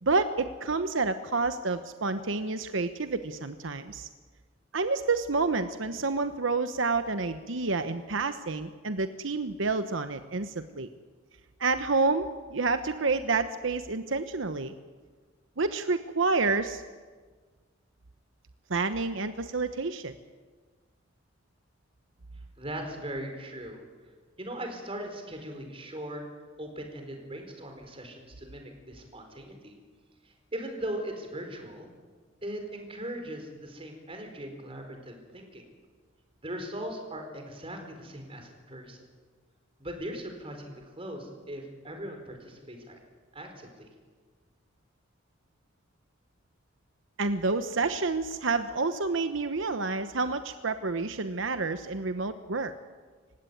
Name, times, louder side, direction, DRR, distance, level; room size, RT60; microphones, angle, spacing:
voice 1, 0.0-4.1 4.7-10.9 11.6-14.7 15.6-16.8 18.7-20.1 47.2-52.7, right 3 dB, 75° right, 10 dB, 1.0 m, -29 dB
voice 2, 22.6-23.8 24.4-26.2 26.6-29.8 30.2-31.9 32.4-35.6 36.4-39.1 39.8-43.0 43.3-43.9, right 1 dB, 30° right, 4 dB, 4.7 m, -39 dB
27.0 x 16.5 x 9.4 m, 1.5 s
head